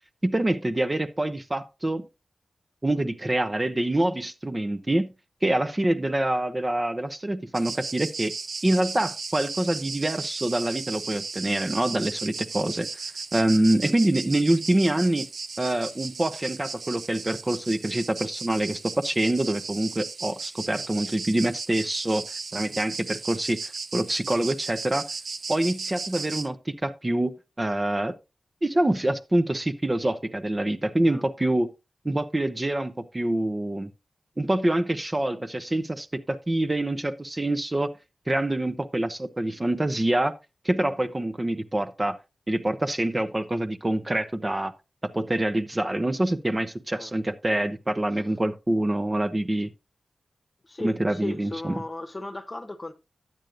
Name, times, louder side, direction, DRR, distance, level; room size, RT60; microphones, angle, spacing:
voice 1, 0.2-2.1 2.8-5.1 5.4-8.3 8.6-12.9 13.3-15.3 15.6-22.2 22.5-25.1 25.5-27.3 27.6-28.1 28.6-31.7 32.0-33.9 34.4-37.9 38.3-40.3 40.6-42.2 42.5-44.7 45.0-49.7 50.8-51.7, right 1 dB, 25° right, 0.7 m, -26 dB
sound 1, 7.5-26.5, right 4 dB, 80° right, 1.0 m, -36 dB
voice 2, 50.6-52.9, left 2 dB, 25° left, 1.0 m, -36 dB
12.0 x 9.0 x 2.5 m
wide cardioid pair, 95°, 0 cm